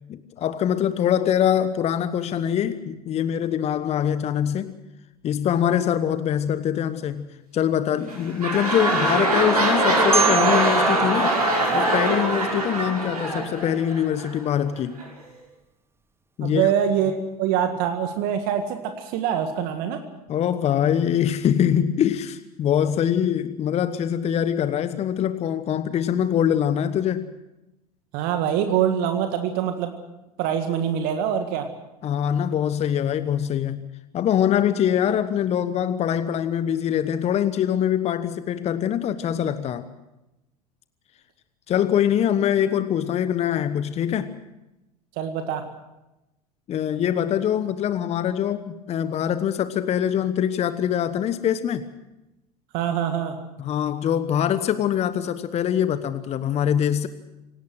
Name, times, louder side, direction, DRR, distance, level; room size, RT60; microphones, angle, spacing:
voice 1, 0.1-4.7 5.2-7.3 7.5-11.3 11.7-15.0 16.4-16.7 20.3-27.3 32.0-33.9 34.1-39.9 41.7-44.3 46.7-51.8 53.6-57.1, left 9 dB, 35° left, 13 dB, 1.1 m, -23 dB
sound 1, 8.0-14.3 15.0-15.1, right 2 dB, 80° right, 6.1 m, -22 dB
Marimba xylophone, 10.1-13.0, right 6 dB, 10° right, 1.8 m, -28 dB
voice 2, 16.4-20.0 28.1-29.9 30.4-31.7 45.2-45.7 52.7-53.4, right 9 dB, 50° right, 7 dB, 1.8 m, -24 dB
27.0 x 18.0 x 6.3 m, 0.95 s
figure-of-eight pair, 75°, 19 cm